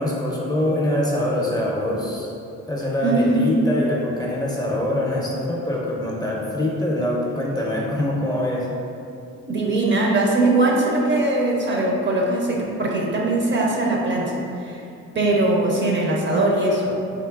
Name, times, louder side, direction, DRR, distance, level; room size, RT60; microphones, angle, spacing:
voice 1, 0.0-2.3 2.7-8.7, left 1 dB, 15° left, -4 dB, 0.5 m, -24 dB
voice 2, 3.0-3.5 9.5-14.8 15.1-17.0, right 2 dB, 40° right, -2 dB, 0.6 m, -21 dB
3.8 x 2.9 x 2.3 m, 2.6 s
cardioid pair, 90°, 30 cm